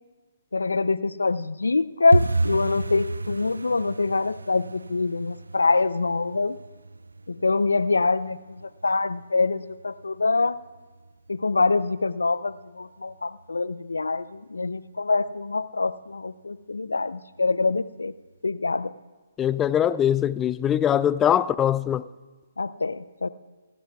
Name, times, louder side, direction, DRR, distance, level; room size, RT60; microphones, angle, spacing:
voice 1, 0.5-6.6 7.3-10.6 11.3-18.1 18.4-18.9 22.6-23.3, left 3 dB, 85° left, 0.5 m, -25 dB
sound 1, 2.1-12.8 13.1-13.8 14.0-14.4 14.6-15.0 15.3-15.4 15.9-16.4 16.8-16.9 17.4-17.5, right 3 dB, 85° right, 0.3 m, -32 dB
voice 2, 19.4-22.0, left 10 dB, 15° left, 0.3 m, -22 dB
29.5 x 12.0 x 2.4 m
figure-of-eight pair, 140°, 0 cm